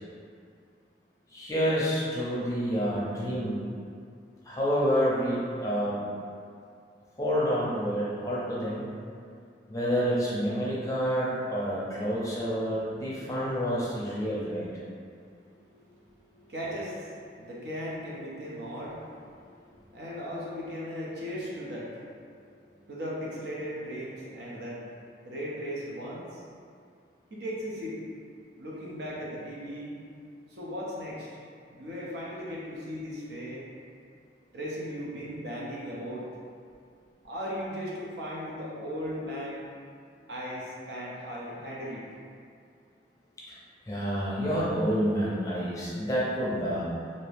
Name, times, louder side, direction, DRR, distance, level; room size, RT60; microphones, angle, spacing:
voice 1, 1.3-3.6 4.4-6.0 7.2-8.9 9.7-14.7 43.9-46.9, equal, 20° left, -7 dB, 0.6 m, -28 dB
voice 2, 15.6-24.9 25.2-26.4 27.3-28.0 28.6-29.9 30.5-31.3 31.7-33.6 34.5-36.3 37.2-39.7 40.3-42.1, equal, 65° right, -5 dB, 0.7 m, -37 dB
2.8 x 2.6 x 3.3 m, 2.3 s
head